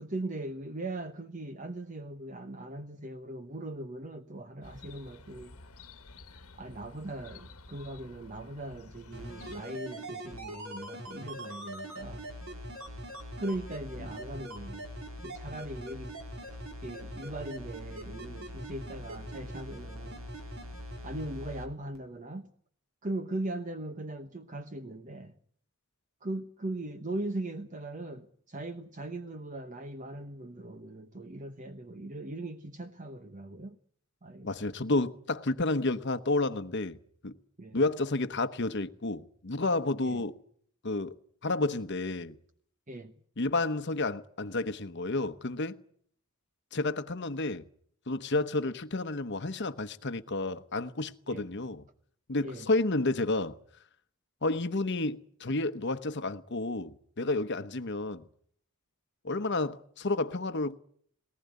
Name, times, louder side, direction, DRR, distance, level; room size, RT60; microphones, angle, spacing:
voice 1, 0.0-5.6 6.5-12.3 13.4-14.9 15.2-16.2 16.8-20.2 21.0-22.5 23.0-25.3 26.2-33.8 34.2-34.7 37.6-37.8 40.0-40.2 42.9-43.1 51.3-51.5 52.4-52.7, right 1 dB, 35° right, 1.0 m, -39 dB
Chirp tweet, 4.6-9.6, left 3 dB, 90° left, 1.4 m, -51 dB
sound 1, 9.1-21.7 21.9-22.0, equal, 75° right, 4.3 m, -42 dB
voice 2, 34.4-37.0 37.2-37.4 37.7-40.4 40.8-41.2 41.4-42.4 43.4-45.8 46.7-47.7 48.1-51.8 52.3-53.6 54.4-58.2 59.2-60.8, left 2 dB, 55° left, 1.0 m, -31 dB
21.5 x 19.0 x 9.5 m
head